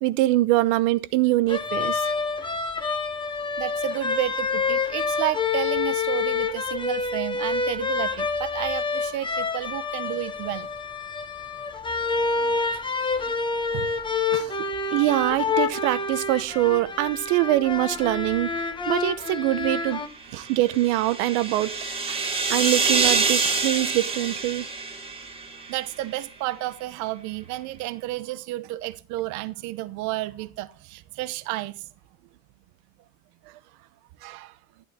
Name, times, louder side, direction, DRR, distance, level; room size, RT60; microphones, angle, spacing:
voice 1, 0.0-2.0 14.3-14.5 14.9-18.5 18.9-20.0 20.3-21.7 22.1-24.7 34.2-34.5, right 17 dB, 80° right, 0.9 m, -23 dB
sound 1, 1.5-20.1, left 4 dB, 15° left, 1.1 m, -27 dB
voice 2, 3.6-10.7 12.4-12.5 13.2-13.3 13.7-13.9 22.2-22.3 25.7-31.9 33.4-33.5, right 16 dB, 50° right, 0.9 m, -31 dB
sound 2, 20.2-25.8, right 4 dB, 15° right, 1.9 m, -26 dB
11.5 x 11.5 x 3.6 m
cardioid pair, 175°, 37 cm